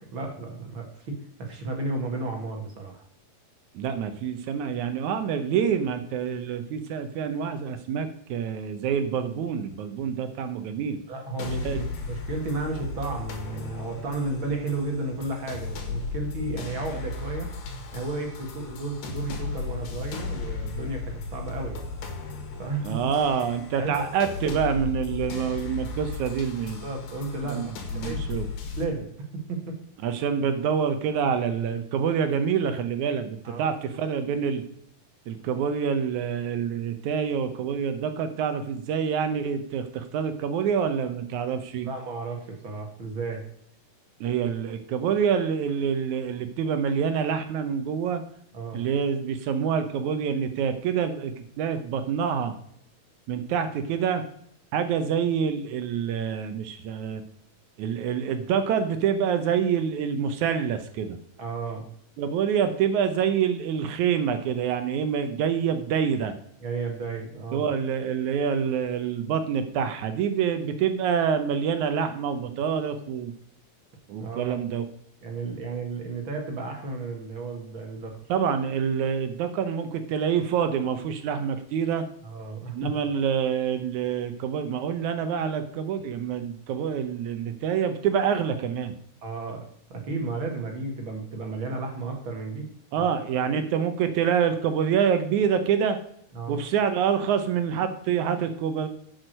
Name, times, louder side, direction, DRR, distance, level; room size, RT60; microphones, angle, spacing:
voice 1, 0.0-3.0 11.1-17.5 17.9-21.9 22.6-23.0 23.8-24.1 26.8-28.3 28.7-29.1 29.3-29.8 33.4-33.7 41.8-43.5 48.5-48.8 61.4-61.9 66.6-67.7 74.2-74.5 75.2-78.2 82.2-82.9 89.2-89.6 89.9-92.7 93.0-93.4 96.3-96.6, right 3 dB, 45° right, 2 dB, 1.8 m, -33 dB
voice 2, 3.7-11.0 11.6-11.8 22.8-26.8 27.4-27.7 27.9-28.5 30.0-34.6 35.3-41.9 44.2-48.2 48.7-52.5 53.3-54.2 54.7-57.2 57.8-61.2 62.2-66.3 67.5-73.3 74.1-74.9 78.3-82.0 82.7-88.9 92.9-96.0 96.5-98.9, right 7 dB, 75° right, 9 dB, 1.8 m, -26 dB
sound 1, 11.4-28.8, left 4 dB, 85° left, 3.5 m, -35 dB
8.7 x 6.3 x 6.4 m, 0.68 s
omnidirectional pair, 4.2 m